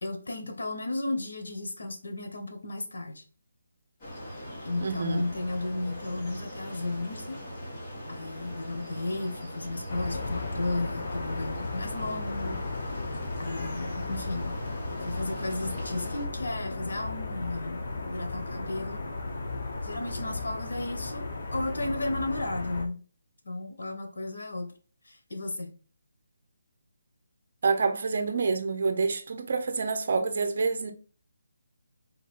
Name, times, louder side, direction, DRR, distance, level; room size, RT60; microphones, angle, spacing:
voice 1, 0.0-3.2 4.6-7.4 8.1-14.5 15.0-19.0 19.8-21.3 21.5-23.0 23.4-24.7 25.1-25.7, left 2 dB, 80° left, 1.1 m, -34 dB
sound 1, 4.0-16.3, equal, 25° left, 1.6 m, -41 dB
voice 2, 4.8-5.3 27.6-30.9, right 4 dB, 50° right, 0.7 m, -27 dB
sound 2, 9.9-22.9, left 2 dB, 45° left, 0.8 m, -35 dB
4.0 x 2.6 x 3.6 m
hypercardioid pair, 165°, 0 cm